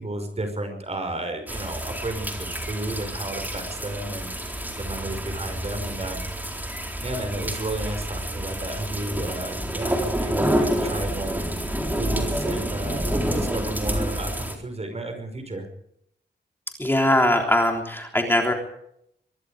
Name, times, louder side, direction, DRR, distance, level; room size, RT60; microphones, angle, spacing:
voice 1, 0.0-6.2 7.0-11.4 11.9-15.7, right 2 dB, 35° right, 6 dB, 5.8 m, -32 dB
sound 1, 1.5-14.5, right 1 dB, 10° right, 4.1 m, -28 dB
voice 2, 16.8-18.5, left 1 dB, 10° left, 2 dB, 3.5 m, -21 dB
24.5 x 22.0 x 5.2 m, 0.73 s
wide cardioid pair, 160°, 18 cm